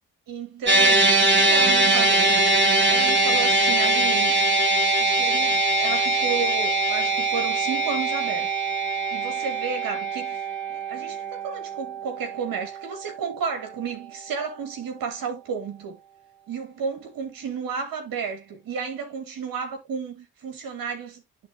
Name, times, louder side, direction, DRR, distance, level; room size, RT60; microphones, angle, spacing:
voice 1, 0.3-2.4 2.9-4.4 5.0-8.5 9.1-10.4 10.7-16.0 16.5-21.5, right 6 dB, 70° right, 2.5 m, -32 dB
sound 1, 0.7-13.1, right 2 dB, 30° right, 3.2 m, -22 dB
11.5 x 4.1 x 2.7 m
supercardioid pair, 45°, 35 cm